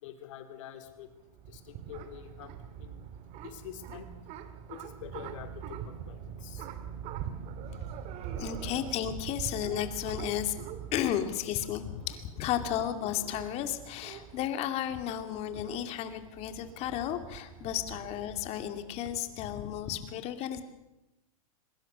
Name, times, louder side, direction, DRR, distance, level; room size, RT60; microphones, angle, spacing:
voice 1, 0.0-1.1 1.5-3.1 3.4-4.1 4.7-6.7, left 10 dB, 60° left, 8 dB, 3.1 m, -46 dB
sound 1, 1.0-19.2, right 9 dB, 35° right, 2.2 m, -43 dB
voice 2, 8.3-10.5 10.9-20.6, left 11 dB, 35° left, 8 dB, 2.4 m, -33 dB
23.0 x 21.5 x 6.8 m, 0.93 s
hypercardioid pair, 140°, 18 cm